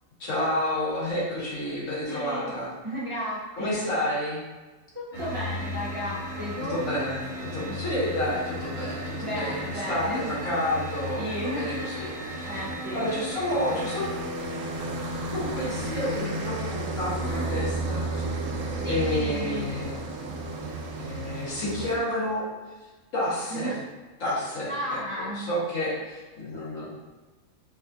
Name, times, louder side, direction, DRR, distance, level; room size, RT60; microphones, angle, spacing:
voice 1, 0.2-2.7 3.5-4.4 6.7-14.1 15.3-18.1 18.9-20.0 21.0-22.4 23.1-23.7 24.2-26.9, left 1 dB, 80° left, -7 dB, 1.6 m, -30 dB
voice 2, 2.1-2.5 2.8-3.9 4.9-6.8 9.2-10.3 11.2-12.0 12.5-13.0 17.2-17.5 18.8-19.7 23.5-23.7 24.7-25.5, equal, 30° right, -9 dB, 0.7 m, -34 dB
sound 1, 5.1-14.0, equal, 60° left, 1.1 m, -39 dB
sound 2, 5.1-22.0, right 1 dB, 80° right, 0.9 m, -34 dB
5.0 x 2.3 x 2.6 m, 1.2 s
omnidirectional pair, 1.3 m